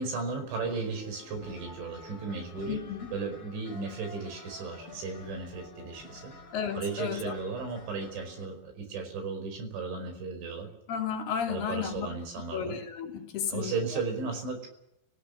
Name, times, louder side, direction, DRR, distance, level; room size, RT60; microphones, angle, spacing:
voice 1, 0.0-2.8 3.1-6.3 6.8-10.7 11.5-12.8 13.5-14.7, right 4 dB, 85° right, 6 dB, 7.3 m, -35 dB
sound 1, 0.6-8.5, left 3 dB, 30° left, 4.8 m, -49 dB
voice 2, 2.7-3.0 6.5-7.3 10.9-12.1 12.5-13.7, left 8 dB, 60° left, 3 dB, 4.8 m, -33 dB
29.5 x 18.0 x 6.5 m, 0.82 s
omnidirectional pair, 5.2 m